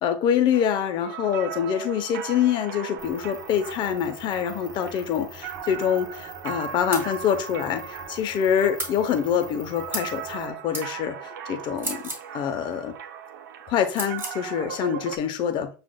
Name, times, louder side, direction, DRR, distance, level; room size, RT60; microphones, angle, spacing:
voice 1, 0.0-12.0 12.3-12.9 13.7-15.7, left 8 dB, 50° left, 0.7 m, -25 dB
sound 1, 0.5-15.2, right 8 dB, 80° right, 0.5 m, -38 dB
sound 2, 3.0-10.5, right 1 dB, 5° left, 1.1 m, -46 dB
sound 3, 6.9-7.1 8.8-9.0 9.9-10.1 10.7-10.9 11.7-12.3 13.9-14.4, right 2 dB, 20° right, 1.6 m, -32 dB
7.5 x 2.5 x 2.2 m
hypercardioid pair, 100°, 10 cm